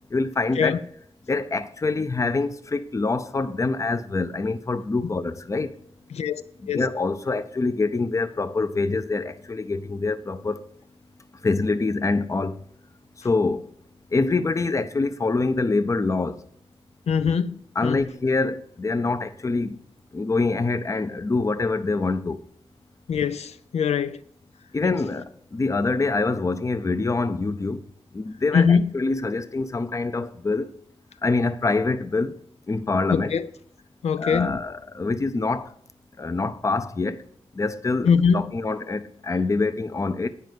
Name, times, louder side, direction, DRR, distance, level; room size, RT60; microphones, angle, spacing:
voice 1, 0.1-0.8 1.3-5.7 6.6-10.6 11.4-12.6 13.2-13.7 14.1-16.4 17.8-19.8 20.1-22.4 24.7-27.8 28.1-30.7 31.2-32.4 32.7-33.4 34.2-35.7 36.2-37.2 37.5-40.3, left 3 dB, 30° left, 0.6 m, -25 dB
voice 2, 6.1-6.8 17.1-18.0 23.1-24.2 24.8-24.9 28.5-28.9 33.1-33.5 34.0-34.6 38.1-38.5, left 6 dB, 80° left, 0.4 m, -22 dB
9.5 x 5.2 x 7.6 m
wide cardioid pair, 125°, 11 cm